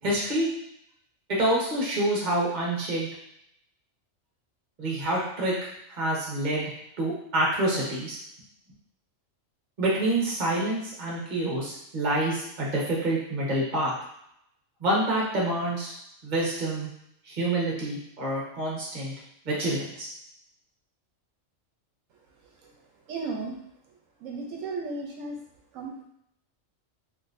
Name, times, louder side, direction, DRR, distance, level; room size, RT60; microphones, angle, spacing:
voice 1, 0.0-0.5 1.3-3.1 4.8-5.5 5.9-6.7 7.0-8.2 9.8-13.9 14.8-15.9 16.2-16.9 17.2-19.1 19.4-20.1, right 1 dB, 40° right, -4 dB, 1.0 m, -27 dB
voice 2, 23.1-23.6 24.2-25.4 25.7-26.0, right 3 dB, 80° right, 0 dB, 1.0 m, -34 dB
3.7 x 2.7 x 2.5 m, 0.75 s
omnidirectional pair, 1.4 m